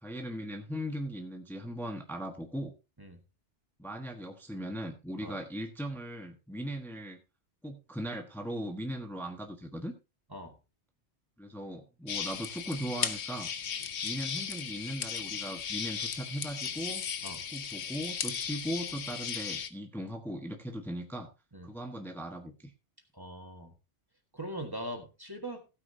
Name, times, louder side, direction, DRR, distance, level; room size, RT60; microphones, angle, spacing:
voice 1, 0.0-2.7 3.8-7.2 7.6-9.9 11.4-13.5 14.0-17.0 17.5-21.3 21.6-22.7, equal, ahead, 4 dB, 1.3 m, -38 dB
sound 1, 12.1-19.7, left 7 dB, 70° left, 1.2 m, -36 dB
voice 2, 23.1-23.7 24.3-25.6, right 1 dB, 20° right, 5 dB, 1.6 m, -41 dB
16.0 x 9.1 x 2.7 m, 0.28 s
omnidirectional pair, 1.2 m